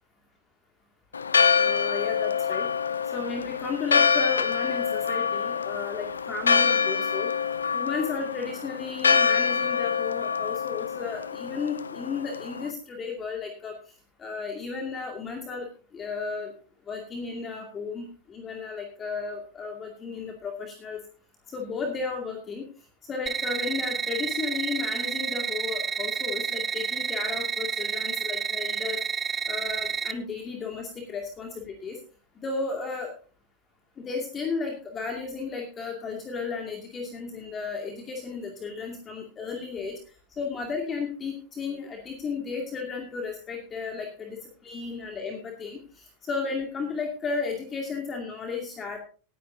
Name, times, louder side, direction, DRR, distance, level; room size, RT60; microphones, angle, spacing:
Church bell, 1.1-12.7, left 6 dB, 75° left, 0.6 m, -25 dB
voice 1, 1.5-2.7 3.1-7.3 7.7-13.7 14.2-15.7 15.9-16.5 16.9-21.0 21.5-22.7 23.1-29.0 29.5-32.0 32.4-33.1 34.0-40.0 40.4-44.4 44.6-49.0, left 4 dB, 20° left, 2 dB, 2.3 m, -34 dB
sound 1, 23.3-30.1, right 7 dB, 20° right, 0.6 m, -30 dB
18.0 x 10.0 x 2.8 m, 0.38 s
figure-of-eight pair, 90°, 0 cm